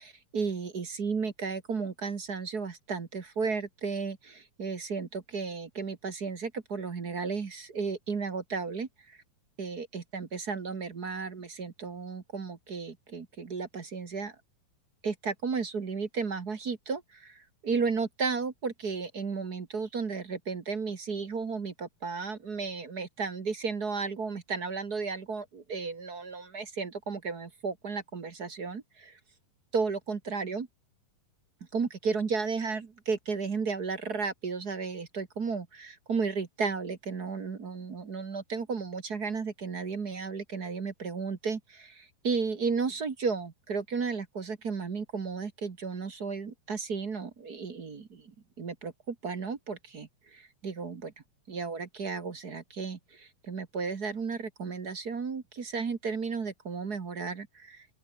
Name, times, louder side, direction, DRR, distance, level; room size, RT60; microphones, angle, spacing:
voice 1, 0.0-9.2 9.6-14.3 15.0-29.2 29.7-30.7 31.7-51.1 51.5-57.9, right 5 dB, 35° right, 1.7 m, -34 dB
open air
omnidirectional pair, 3.9 m